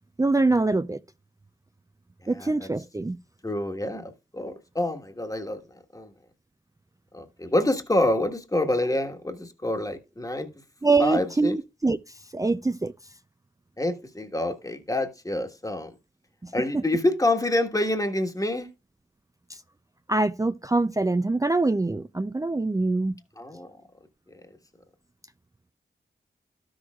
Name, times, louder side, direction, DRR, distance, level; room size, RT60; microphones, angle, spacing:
voice 1, 0.2-1.0 2.3-3.2 10.8-12.0 12.3-12.9 16.4-16.8 19.5-19.6 20.1-23.2, right 3 dB, 15° right, 0.4 m, -24 dB
voice 2, 2.3-2.7 3.4-5.6 5.9-6.1 7.1-10.5 11.0-11.6 13.8-15.9 16.5-18.7 23.4-23.7 24.3-24.4, left 1 dB, 15° left, 1.4 m, -27 dB
12.5 x 6.4 x 2.4 m
cardioid pair, 45°, 20 cm